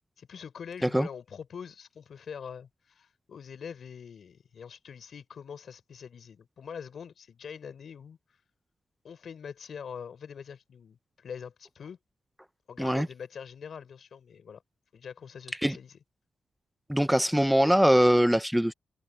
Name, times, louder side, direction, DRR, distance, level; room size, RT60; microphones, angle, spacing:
voice 1, 0.0-8.2 9.0-12.0 12.7-14.6 14.9-16.0, left 7 dB, 70° left, 4.3 m, -44 dB
voice 2, 16.9-18.7, equal, 5° right, 0.7 m, -22 dB
cardioid pair, 55°, 0 cm